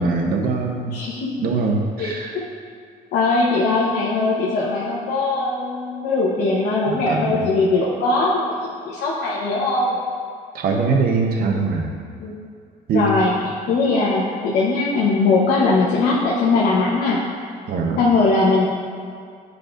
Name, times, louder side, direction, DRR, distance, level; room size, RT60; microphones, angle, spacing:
voice 1, 0.0-0.9 1.4-2.4 6.9-7.5 10.5-11.9 12.9-13.1 17.7-18.0, right 4 dB, 60° right, 2 dB, 0.9 m, -22 dB
voice 2, 0.9-1.3 2.0-2.4 3.1-10.0 11.4-11.6 12.2-12.4 12.9-17.2 18.0-18.7, left 3 dB, 75° left, -6 dB, 1.0 m, -20 dB
9.1 x 4.7 x 2.5 m, 2.3 s
cardioid pair, 110°, 17 cm